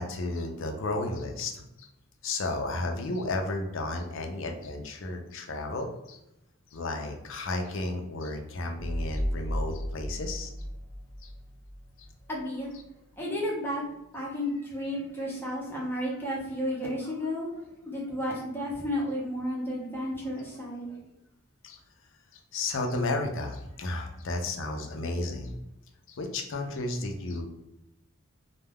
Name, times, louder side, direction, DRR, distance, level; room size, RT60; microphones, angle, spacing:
voice 1, 0.0-1.9 2.2-6.2 6.7-10.5 11.2-11.3 21.6-21.8 22.5-25.5 26.1-27.4, left 2 dB, 60° left, 2 dB, 0.4 m, -33 dB
sound 1, 8.8-12.1, equal, 85° right, 0.9 m, -34 dB
voice 2, 12.3-12.7 13.2-13.8 14.1-17.6 17.9-20.9, equal, 10° left, -4 dB, 0.6 m, -32 dB
2.2 x 2.2 x 3.3 m, 0.86 s
head